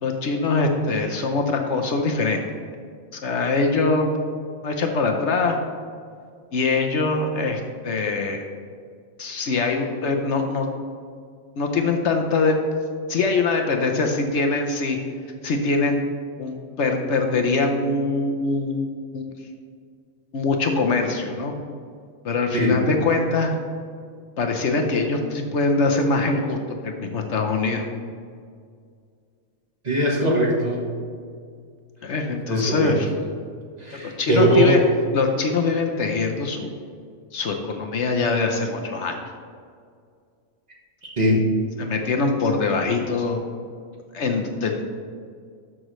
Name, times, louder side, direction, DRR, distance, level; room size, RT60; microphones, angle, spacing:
voice 1, 0.0-2.4 3.1-4.1 4.6-5.6 6.5-8.4 9.2-10.7 11.6-12.6 13.1-15.0 15.4-16.0 16.4-19.3 20.3-21.6 22.2-23.5 24.4-26.6 26.8-27.8 32.0-33.1 33.9-34.8 35.1-36.7 37.3-39.2 41.8-43.4 44.1-44.8, left 3 dB, 60° left, 3 dB, 1.0 m, -23 dB
voice 2, 29.8-30.8 32.5-33.0 33.8-34.8 41.0-41.4, right 1 dB, 30° right, -2 dB, 1.3 m, -20 dB
13.0 x 6.1 x 3.1 m, 2.2 s
omnidirectional pair, 1.4 m